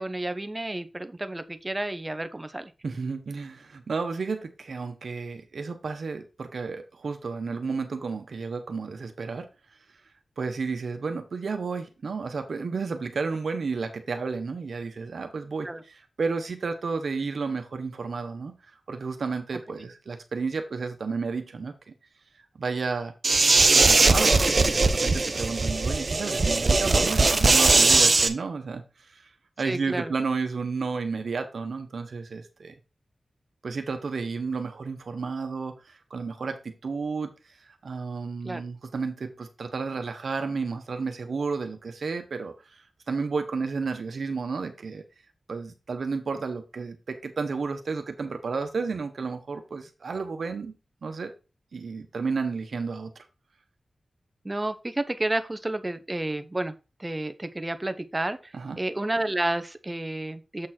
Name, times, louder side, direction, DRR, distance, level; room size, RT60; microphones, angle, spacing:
voice 1, 0.0-2.7 15.6-15.8 19.7-19.8 29.6-30.1 38.4-38.6 54.4-56.7 57.0-58.5 58.8-60.7, right 1 dB, 25° right, 10 dB, 0.9 m, -31 dB
voice 2, 2.8-9.5 10.4-18.6 18.9-21.9 22.6-23.1 23.7-29.3 29.6-32.7 33.6-37.3 37.8-45.0 45.5-50.7 51.0-51.3 51.7-53.1 58.5-58.8, right 4 dB, 80° right, 7 dB, 1.2 m, -32 dB
sound 1, 23.2-28.3, right 3 dB, 50° right, 0.9 m, -20 dB
7.7 x 4.3 x 4.4 m, 0.30 s
wide cardioid pair, 65°, 0 cm